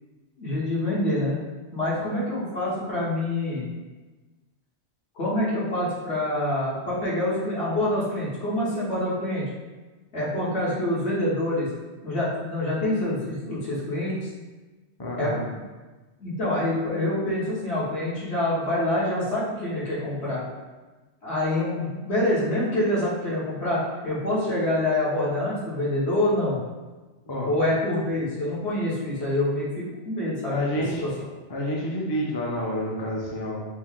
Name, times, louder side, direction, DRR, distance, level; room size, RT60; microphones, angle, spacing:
voice 1, 0.4-1.4 1.7-3.6 5.1-9.4 10.1-11.7 12.0-14.3 15.2-15.3 16.2-20.4 21.2-26.6 27.4-30.6 31.0-31.1, left 1 dB, 70° left, -8 dB, 1.5 m, -26 dB
voice 2, 15.0-15.4 27.3-27.5 30.5-31.0 31.5-33.7, equal, 30° left, -3 dB, 0.4 m, -29 dB
4.5 x 2.0 x 3.6 m, 1.2 s
omnidirectional pair, 1.2 m